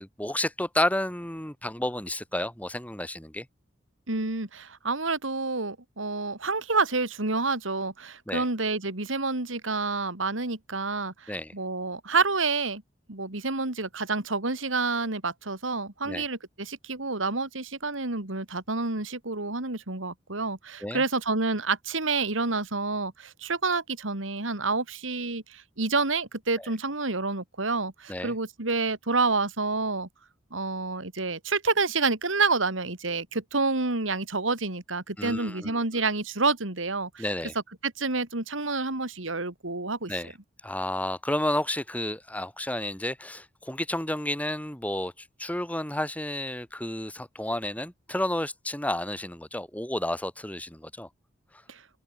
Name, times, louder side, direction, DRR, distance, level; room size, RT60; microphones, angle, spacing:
voice 1, 0.0-3.5 8.3-8.5 11.3-11.5 16.0-16.2 20.8-21.0 26.6-26.7 28.1-28.3 35.2-36.0 37.2-37.5 40.1-40.3 40.6-51.1, left 1 dB, 10° left, 3.1 m, -31 dB
voice 2, 4.1-12.8 13.1-30.1 30.5-37.2 37.8-40.1 51.7-51.8, right 3 dB, 90° right, 2.8 m, -28 dB
head